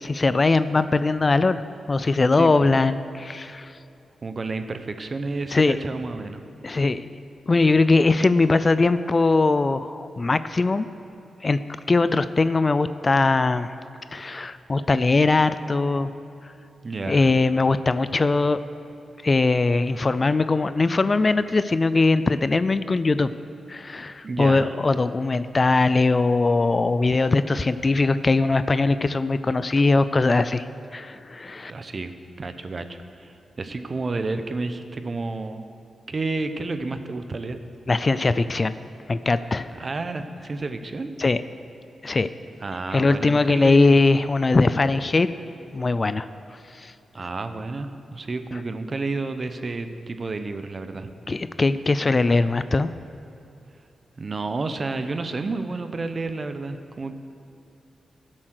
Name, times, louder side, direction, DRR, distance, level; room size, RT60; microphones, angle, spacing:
voice 1, 0.0-1.6 1.9-3.7 5.5-5.8 6.6-7.1 7.5-10.9 11.4-11.6 11.9-13.7 14.1-16.1 17.1-18.6 19.2-23.3 23.7-30.7 30.9-31.7 37.9-38.7 39.1-39.9 41.2-41.4 42.0-42.3 42.9-45.3 45.7-46.3 46.8-46.9 51.3-52.9, left 3 dB, 35° left, 13 dB, 0.4 m, -21 dB
voice 2, 2.3-2.7 4.2-6.4 16.8-17.3 24.2-24.7 31.7-35.6 36.1-37.6 39.8-41.1 42.6-44.0 47.1-51.1 54.2-57.1, right 3 dB, 40° right, 9 dB, 0.8 m, -31 dB
16.0 x 7.5 x 6.5 m, 2.8 s
cardioid pair, 80°, 0 cm